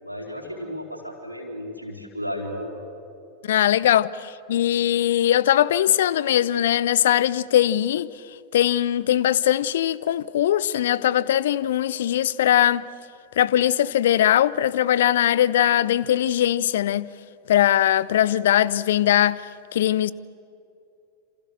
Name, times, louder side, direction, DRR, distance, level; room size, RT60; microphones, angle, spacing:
voice 1, 0.0-2.7, equal, 90° right, 4.2 m, -33 dB
voice 2, 3.4-8.1 8.5-12.8 13.4-17.1 17.5-19.4 19.7-20.1, left 11 dB, 60° left, 0.6 m, -20 dB
27.5 x 27.5 x 6.8 m
figure-of-eight pair, 90°, 0 cm